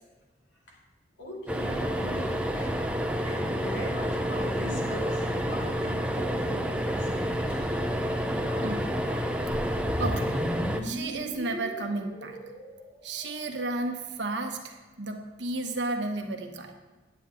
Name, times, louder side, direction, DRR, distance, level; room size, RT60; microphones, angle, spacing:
voice 1, 1.2-2.9 3.2-7.5, equal, 75° left, -2 dB, 2.3 m, -41 dB
sound 1, 1.5-10.8, equal, 5° right, 0.5 m, -29 dB
sound 2, 1.6-11.4, equal, 50° left, 2.6 m, -45 dB
sound 3, 9.5-13.7, equal, 20° left, 2.2 m, -36 dB
voice 2, 10.0-10.4 10.8-12.4 13.0-16.7, right 2 dB, 70° right, 4 dB, 1.1 m, -33 dB
9.6 x 9.0 x 3.7 m, 1.2 s
head